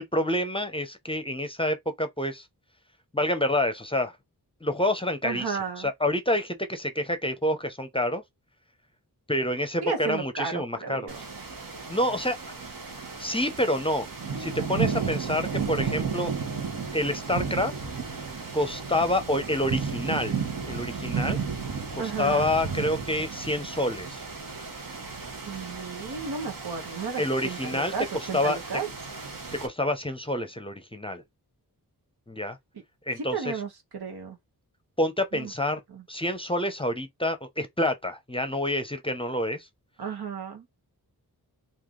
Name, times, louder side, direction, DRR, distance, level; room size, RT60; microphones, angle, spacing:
voice 1, 0.0-2.4 3.1-4.1 4.6-8.2 9.3-11.1 11.9-12.4 13.2-14.1 14.4-16.3 16.9-17.7 18.5-20.4 20.7-21.4 22.2-24.2 27.2-27.9 28.3-28.8 29.6-31.2 32.3-32.6 33.1-33.5 35.0-35.8 36.1-39.6, left 1 dB, 15° left, 0.7 m, -27 dB
voice 2, 5.2-5.9 9.8-11.2 14.8-15.5 22.0-22.5 25.2-28.9 33.3-34.4 35.3-35.5 35.9-36.0 40.0-40.7, right 5 dB, 80° right, 1.2 m, -34 dB
sound 1, 11.1-29.7, right 5 dB, 60° right, 1.1 m, -34 dB
3.3 x 2.6 x 3.7 m
wide cardioid pair, 80°, 38 cm